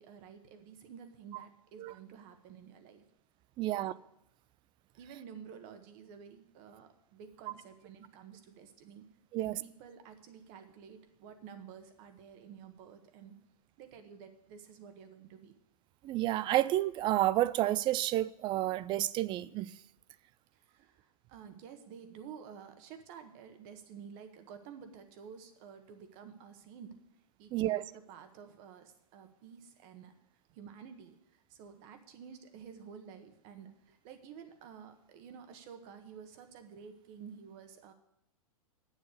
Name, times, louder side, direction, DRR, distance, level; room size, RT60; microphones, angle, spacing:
voice 1, 0.0-3.1 3.7-3.9 5.0-9.0 9.4-13.3 13.8-15.6 20.5-26.9 27.4-30.1 30.5-37.9, right 7 dB, 45° right, 1.6 m, -51 dB
voice 2, 3.6-3.9 9.3-9.6 16.0-19.7 27.5-27.8, right 15 dB, 25° right, 0.4 m, -30 dB
9.2 x 7.3 x 8.3 m
hypercardioid pair, 115°, 19 cm